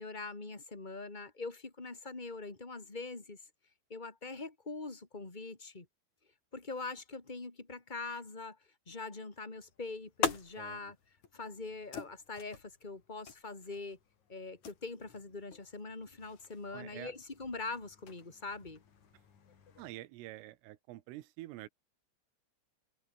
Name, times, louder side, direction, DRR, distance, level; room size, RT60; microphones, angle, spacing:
voice 1, 0.0-3.4 3.9-5.8 6.5-8.6 8.8-10.9 11.3-14.0 14.3-18.8, left 3 dB, 20° left, 1.2 m, -43 dB
sound 1, 9.5-19.9, left 7 dB, 40° left, 3.7 m, -44 dB
voice 2, 10.6-10.9 16.7-17.1 19.8-21.7, right 16 dB, 85° right, 3.8 m, -47 dB
omnidirectional pair, 5.7 m